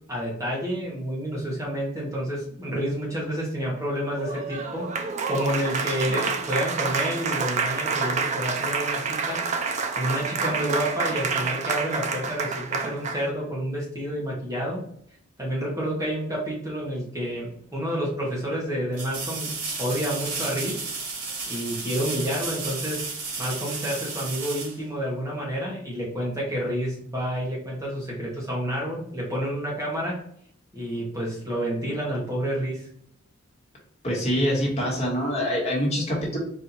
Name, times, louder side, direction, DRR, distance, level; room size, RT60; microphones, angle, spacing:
voice 1, 0.1-9.4 10.0-14.8 15.4-20.8 21.5-23.0 23.4-30.2 30.7-32.9, equal, 15° right, -5 dB, 0.9 m, -29 dB
Applause, 4.1-13.3, right 5 dB, 30° right, 0.3 m, -28 dB
sound 1, 17.6-17.7 18.9-25.5 28.4-28.5, right 4 dB, 85° right, 1.6 m, -33 dB
voice 2, 34.0-36.4, equal, 30° left, -3 dB, 1.4 m, -25 dB
4.2 x 2.5 x 3.9 m, 0.66 s
head